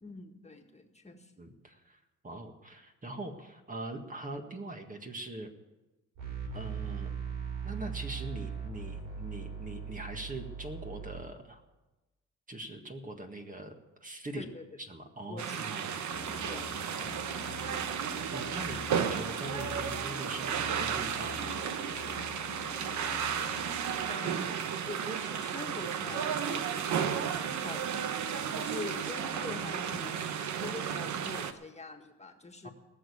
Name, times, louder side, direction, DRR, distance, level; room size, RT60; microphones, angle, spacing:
voice 1, 0.0-1.3 14.4-14.6 15.3-15.8 16.3-16.8 24.1-28.0 28.5-30.2 30.6-32.7, left 3 dB, 20° left, 3 dB, 1.8 m, -45 dB
voice 2, 1.4-5.5 6.5-7.1 7.6-11.6 12.5-13.8 14.0-14.5 14.8-16.0 16.3-17.7 18.3-21.6 32.6-32.7, right 1 dB, 25° right, 4 dB, 1.8 m, -42 dB
sound 1, 6.2-11.2, right 6 dB, 85° right, 5.4 m, -39 dB
sound 2, 15.4-31.5, right 8 dB, 70° right, 1.1 m, -33 dB
sound 3, 16.1-24.1, left 7 dB, 75° left, 1.6 m, -47 dB
19.0 x 6.7 x 8.6 m, 1.1 s
cardioid pair, 90°, 30 cm